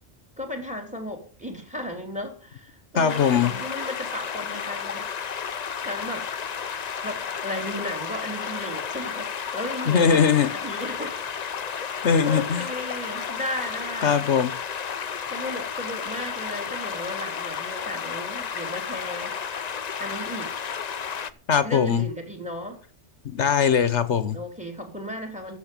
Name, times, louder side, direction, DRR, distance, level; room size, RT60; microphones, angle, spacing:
voice 1, 0.4-5.1 5.8-6.3 7.0-11.3 12.2-14.2 15.3-19.4 20.0-20.5 21.6-22.8 24.3-25.6, left 1 dB, 5° right, 3.1 m, -35 dB
voice 2, 2.9-3.5 9.9-10.5 12.0-12.7 14.0-14.5 21.5-22.0 23.2-24.4, left 7 dB, 80° left, 1.4 m, -20 dB
sound 1, 3.1-21.3, left 7 dB, 45° left, 0.7 m, -32 dB
13.5 x 7.0 x 6.8 m
omnidirectional pair, 1.2 m